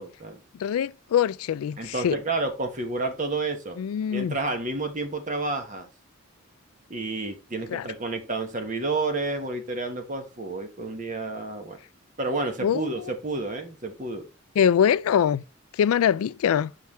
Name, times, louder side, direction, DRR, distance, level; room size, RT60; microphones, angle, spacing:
voice 1, 0.0-0.4 1.8-3.8 4.1-5.9 6.9-11.8 12.2-14.2, right 3 dB, 35° right, 1.4 m, -30 dB
voice 2, 0.6-2.2 3.8-4.4 7.7-7.9 12.6-12.9 14.6-15.4 15.7-16.7, left 8 dB, 90° left, 0.3 m, -23 dB
5.9 x 5.8 x 4.3 m
head